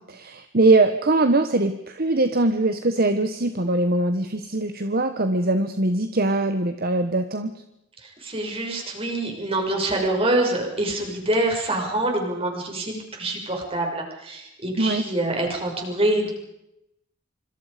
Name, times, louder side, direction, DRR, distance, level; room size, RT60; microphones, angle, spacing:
voice 1, 0.0-7.5 14.8-15.0, right 2 dB, 50° right, 8 dB, 1.3 m, -22 dB
voice 2, 8.0-16.3, right 1 dB, 30° right, 1 dB, 6.6 m, -25 dB
26.5 x 26.0 x 5.2 m, 0.84 s
head